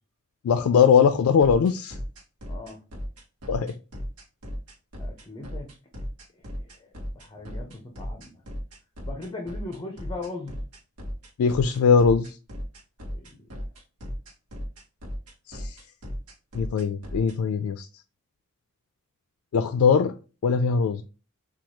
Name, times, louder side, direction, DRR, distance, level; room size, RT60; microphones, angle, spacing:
voice 1, 0.4-2.0 3.5-3.7 11.4-12.3 15.5-15.7 16.5-17.9 19.5-20.1 20.4-21.0, left 6 dB, 70° left, 0.3 m, -20 dB
sound 1, 1.4-17.4, equal, 90° right, 0.9 m, -36 dB
voice 2, 2.5-2.8 5.0-5.7 6.6-6.9 7.1-8.4 9.0-10.6 13.1-13.5, left 2 dB, 20° left, 0.6 m, -39 dB
4.5 x 2.3 x 2.8 m
head